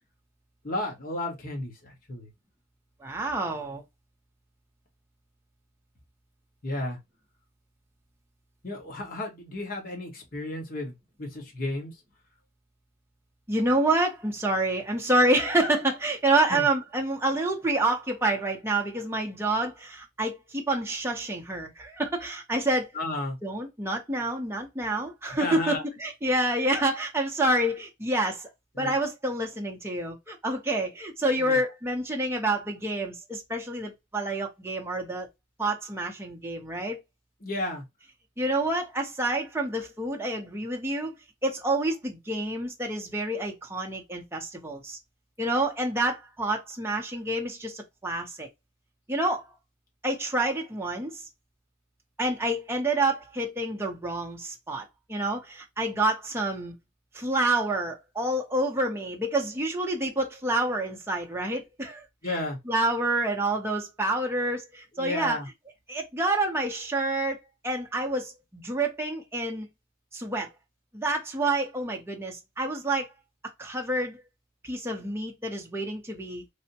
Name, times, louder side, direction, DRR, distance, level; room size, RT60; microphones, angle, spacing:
voice 1, 0.6-2.3 6.6-7.0 8.6-11.9 16.5-16.6 22.9-23.4 25.4-25.8 28.7-28.9 31.3-31.6 37.4-37.8 62.2-62.6 65.0-65.5, left 1 dB, 45° left, 1.1 m, -33 dB
voice 2, 3.0-3.8 13.5-22.9 23.4-28.5 28.8-35.3 35.6-37.0 38.4-41.1 41.4-45.0 45.4-48.5 49.1-49.4 50.0-51.2 52.2-56.7 57.1-62.4 62.7-65.4 65.9-67.4 67.6-69.7 70.1-70.5 70.9-73.1 73.6-74.2 74.6-76.4, right 2 dB, 10° right, 0.6 m, -28 dB
3.3 x 2.1 x 2.7 m
head